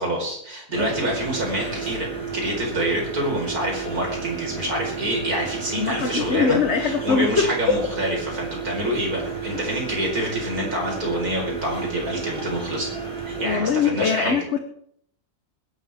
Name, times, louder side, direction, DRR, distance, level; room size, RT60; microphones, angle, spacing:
voice 1, 0.0-2.1 2.3-12.9 13.3-14.4, right 1 dB, 65° right, 0 dB, 5.2 m, -27 dB
sound 1, 0.7-13.6, right 5 dB, 40° right, 5.8 m, -32 dB
voice 2, 5.7-7.8 13.4-14.6, left 5 dB, 50° left, 6 dB, 1.2 m, -22 dB
21.0 x 11.5 x 3.6 m, 0.65 s
omnidirectional pair, 1.7 m